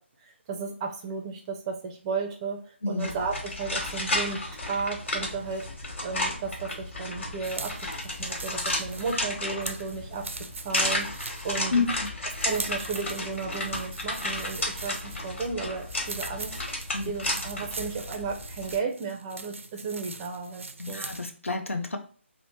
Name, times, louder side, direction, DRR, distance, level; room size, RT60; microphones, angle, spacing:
voice 1, 0.5-2.6 2.9-5.7 6.0-7.9 8.2-10.3 10.6-11.7 12.4-16.6 17.0-21.0, right 5 dB, 20° right, 3 dB, 0.5 m, -34 dB
sound 1, 3.0-18.8, left 1 dB, 65° left, 1.5 m, -33 dB
sound 2, 7.4-21.4, right 3 dB, 80° right, 0.4 m, -42 dB
voice 2, 11.7-12.1 16.9-17.5 20.8-22.0, left 4 dB, 85° left, 6 dB, 0.6 m, -30 dB
3.1 x 2.1 x 4.0 m, 0.41 s
figure-of-eight pair, 155°, 7 cm